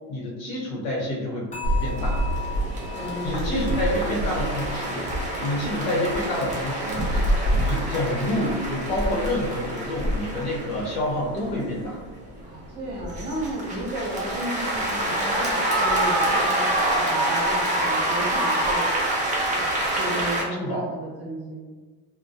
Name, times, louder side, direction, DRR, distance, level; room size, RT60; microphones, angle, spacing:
voice 1, 0.1-1.5 1.8-2.2 3.2-7.2 7.5-12.0 20.6-20.8, left 1 dB, 55° left, -4 dB, 0.9 m, -28 dB
sound 1, 1.5-8.6 8.9-9.3 9.8-9.9, left 8 dB, 15° left, 0.9 m, -41 dB
sound 2, 1.6-7.7, right 1 dB, 75° left, 0.6 m, -28 dB
sound 3, 1.6-20.4, right 1 dB, 20° right, 0.4 m, -27 dB
voice 2, 2.9-4.3 12.4-18.9 19.9-21.7, right 1 dB, 35° right, -6 dB, 1.0 m, -33 dB
2.2 x 2.1 x 2.6 m, 1.3 s
supercardioid pair, 115°, 42 cm